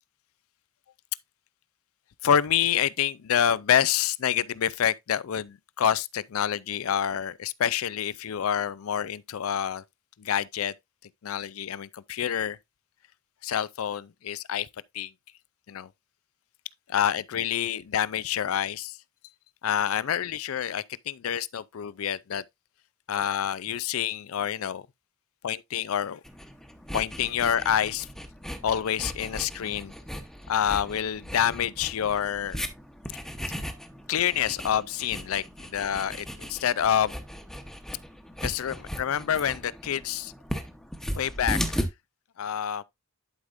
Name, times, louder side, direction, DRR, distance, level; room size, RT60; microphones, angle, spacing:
voice 1, 2.2-9.8 10.2-10.7 11.2-12.6 13.4-14.7 14.9-15.1 15.7-15.9 16.9-19.0 19.6-22.4 23.1-24.8 25.4-26.2 26.9-28.1 28.6-29.9 30.5-32.6 34.1-37.1 38.4-40.3 41.2-41.8 42.4-42.8, left 9 dB, 90° left, 0.4 m, -27 dB
sound 1, 26.2-41.9, equal, ahead, 0.9 m, -37 dB
11.0 x 5.0 x 2.5 m
head